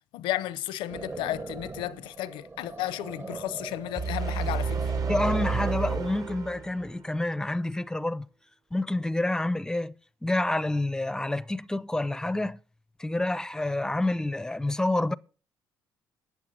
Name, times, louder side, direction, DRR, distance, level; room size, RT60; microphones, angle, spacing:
voice 1, 0.1-4.9, left 14 dB, 90° left, 0.7 m, -33 dB
sound 1, 0.9-6.1, right 3 dB, 30° right, 0.9 m, -39 dB
sound 2, 3.9-7.0, right 5 dB, 50° right, 1.2 m, -30 dB
voice 2, 5.1-8.3 8.7-10.0 10.2-12.6 13.0-15.1, left 2 dB, 10° left, 0.5 m, -28 dB
11.0 x 8.3 x 6.2 m
cardioid pair, 95°, 8 cm